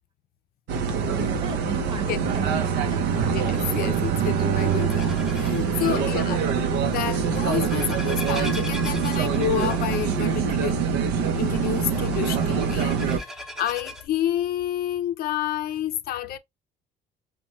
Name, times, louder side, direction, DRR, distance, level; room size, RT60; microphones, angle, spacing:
sound 1, 0.7-13.2, right 6 dB, 85° right, 0.6 m, -25 dB
voice 1, 1.2-3.2 5.9-6.7, right 4 dB, 30° right, 0.9 m, -37 dB
Bowed string instrument, 2.2-6.6, right 13 dB, 45° right, 0.4 m, -30 dB
sound 2, 3.1-14.1, left 1 dB, ahead, 0.7 m, -41 dB
voice 2, 3.3-6.4 6.8-10.8 11.1-16.4, left 11 dB, 65° left, 0.5 m, -29 dB
2.8 x 2.2 x 3.1 m
cardioid pair, 110°, 17 cm